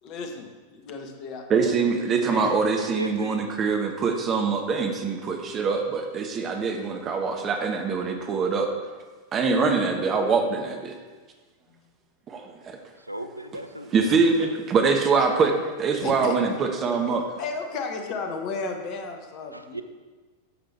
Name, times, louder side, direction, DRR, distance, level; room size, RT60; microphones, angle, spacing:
voice 1, 0.0-2.5 11.7-11.8 16.0-16.4 17.4-19.8, left 4 dB, 40° left, 4 dB, 1.4 m, -34 dB
voice 2, 1.5-8.7 9.3-10.9 12.3-12.8 13.9-17.3, right 4 dB, 25° right, 4 dB, 1.4 m, -24 dB
voice 3, 2.9-3.4 13.1-14.5 19.5-19.8, right 1 dB, 85° right, 9 dB, 0.6 m, -35 dB
11.5 x 7.6 x 4.5 m, 1.3 s
figure-of-eight pair, 90°, 0 cm